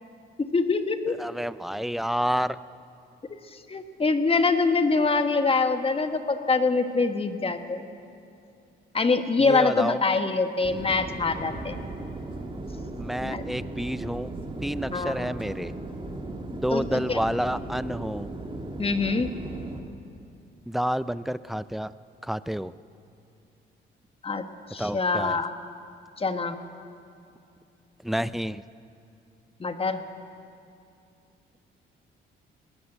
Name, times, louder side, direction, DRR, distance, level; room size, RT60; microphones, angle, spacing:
voice 1, 0.4-1.2 3.5-7.9 8.9-11.8 13.2-13.4 14.9-15.2 16.7-17.2 18.8-19.3 24.2-24.4 24.7-25.5 26.2-26.6 29.6-30.0, left 4 dB, 30° left, 8 dB, 1.5 m, -24 dB
voice 2, 1.2-2.6 9.4-10.1 13.0-14.3 14.6-15.7 16.6-18.3 20.7-21.9 22.2-22.7 24.8-25.4 28.0-28.6, equal, ahead, 16 dB, 0.5 m, -29 dB
sound 1, 10.6-19.8, right 2 dB, 25° right, 2.4 m, -37 dB
21.5 x 18.5 x 8.0 m, 2.6 s
cardioid pair, 90°, 20 cm